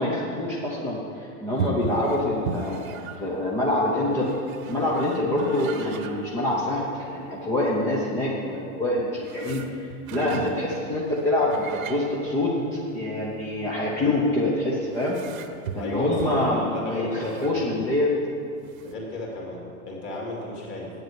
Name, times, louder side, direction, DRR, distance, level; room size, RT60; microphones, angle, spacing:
voice 1, 0.0-3.0 3.2-4.3 4.7-15.2 15.7-18.1, left 1 dB, 5° left, -5 dB, 0.5 m, -26 dB
sound 1, 1.5-18.0 18.3-18.4 18.6-18.9, right 5 dB, 70° right, 1.0 m, -38 dB
voice 2, 15.8-17.6 18.8-20.9, left 2 dB, 25° left, -2 dB, 2.4 m, -33 dB
8.8 x 7.9 x 9.2 m, 2.5 s
supercardioid pair, 160°, 43 cm